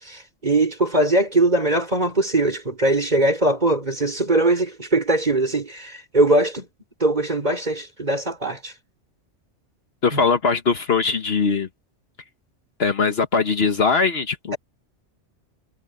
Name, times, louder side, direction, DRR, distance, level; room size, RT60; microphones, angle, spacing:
voice 1, 0.0-6.7 7.0-8.7 10.1-10.2, right 2 dB, 35° right, 5.1 m, -21 dB
voice 2, 10.0-11.7 12.8-14.5, left 5 dB, 60° left, 1.4 m, -20 dB
omnidirectional pair, 1.2 m